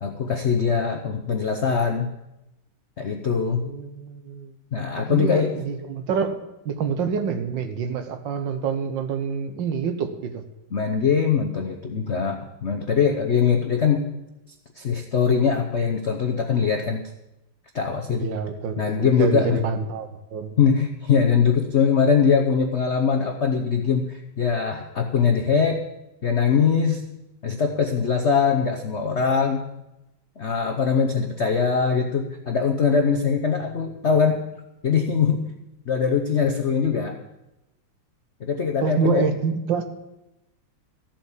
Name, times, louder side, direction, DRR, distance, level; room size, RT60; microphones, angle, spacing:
voice 1, 0.0-2.1 3.0-3.6 4.7-5.5 10.7-14.1 14.8-17.0 17.7-18.3 18.8-19.6 20.6-25.8 26.2-27.0 27.4-29.6 30.4-34.4 34.8-35.4 35.9-37.2 38.4-39.3, left 6 dB, 75° left, 4 dB, 0.6 m, -22 dB
voice 2, 3.4-4.5 5.1-6.4 6.6-10.4 18.1-20.6 38.8-39.9, right 6 dB, 65° right, 8 dB, 1.6 m, -27 dB
14.0 x 7.4 x 7.3 m, 0.92 s
omnidirectional pair, 2.4 m